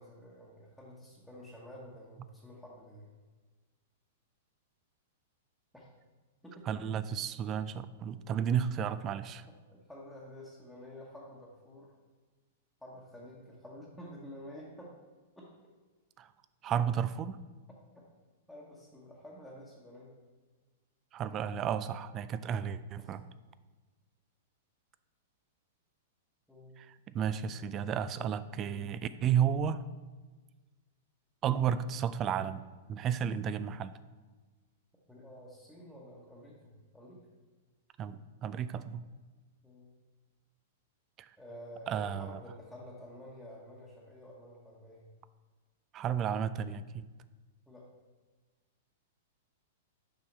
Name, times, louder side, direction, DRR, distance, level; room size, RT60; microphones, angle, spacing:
voice 1, 0.0-3.1 5.7-5.9 6.4-6.9 9.7-11.9 12.8-14.9 15.4-15.5 17.9-18.0 18.5-20.1 23.0-23.1 26.5-26.7 31.5-31.6 35.1-37.2 39.6-39.9 41.4-45.0 47.7-47.9, equal, ahead, -7 dB, 1.2 m, -50 dB
voice 2, 6.7-9.4 16.2-16.3 16.6-17.4 21.1-23.2 26.8-26.9 27.1-29.9 31.4-32.6 32.9-34.0 38.0-39.1 41.2-41.3 41.9-42.4 45.9-47.1, right 8 dB, 30° right, 14 dB, 0.3 m, -32 dB
6.9 x 5.6 x 3.4 m, 1.3 s
hypercardioid pair, 110°, 0 cm